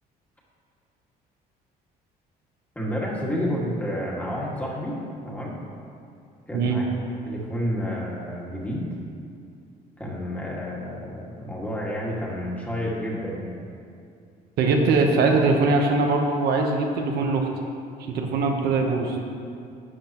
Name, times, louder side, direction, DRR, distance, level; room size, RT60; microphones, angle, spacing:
voice 1, 2.8-5.0 5.2-5.6 6.5-6.8 7.3-8.9 10.0-13.6, equal, 10° left, -4 dB, 1.9 m, -30 dB
voice 2, 14.6-17.5 18.0-19.2, right 3 dB, 75° right, 2 dB, 1.0 m, -21 dB
11.5 x 7.8 x 3.0 m, 2.4 s
cardioid pair, 110°, 17 cm